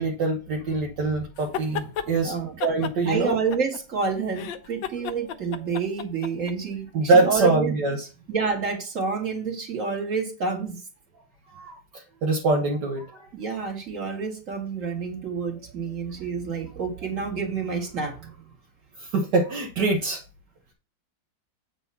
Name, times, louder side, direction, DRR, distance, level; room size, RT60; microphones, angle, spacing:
voice 1, 0.0-2.3 2.6-3.4 6.9-8.1 11.5-13.0 19.0-20.2, right 3 dB, 65° right, 0 dB, 1.6 m, -24 dB
sound 1, 1.4-2.1 2.6-4.0 4.3-6.5, left 8 dB, 80° left, 1.4 m, -33 dB
voice 2, 2.2-2.6 3.0-7.8 8.3-10.8 13.3-18.4, right 5 dB, 45° right, 2 dB, 2.3 m, -28 dB
8.4 x 4.8 x 5.6 m, 0.35 s
omnidirectional pair, 2.0 m